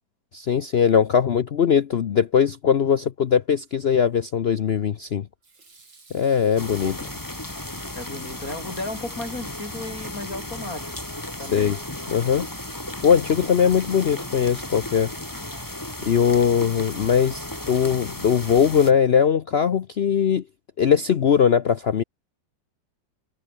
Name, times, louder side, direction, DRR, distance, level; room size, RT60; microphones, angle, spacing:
voice 1, 0.3-5.3 6.1-7.1 11.4-11.8 12.1-12.5 13.0-15.1 16.0-20.4 20.8-22.0, left 7 dB, 70° left, 0.5 m, -20 dB
Water tap faucet / Sink (filling or washing), 5.4-18.8, right 4 dB, 80° right, 5.3 m, -53 dB
sound 1, 6.6-18.9, left 1 dB, 10° left, 2.1 m, -35 dB
voice 2, 8.0-11.0 11.4-11.8, left 2 dB, 45° left, 4.2 m, -34 dB
omnidirectional pair, 2.0 m